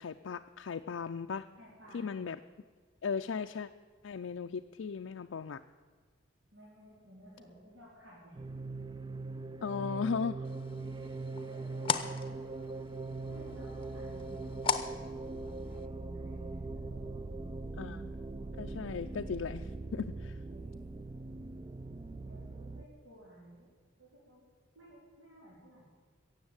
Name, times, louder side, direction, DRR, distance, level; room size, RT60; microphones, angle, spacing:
voice 1, 0.0-1.5 1.9-2.4 3.0-3.7 4.0-5.6 9.6-10.4 17.8-18.1 18.6-20.4, left 5 dB, 75° left, 6 dB, 0.4 m, -37 dB
voice 2, 1.6-2.2 6.5-8.4 11.4-12.7 13.2-17.5 20.5-20.9 22.2-23.7 24.0-24.5 24.7-25.9, equal, 80° right, -7 dB, 4.1 m, -55 dB
sound 1, 8.3-22.8, right 3 dB, 20° right, 0.4 m, -41 dB
sound 2, 10.4-15.9, left 6 dB, 30° left, 0.7 m, -39 dB
16.5 x 7.4 x 8.8 m, 1.5 s
head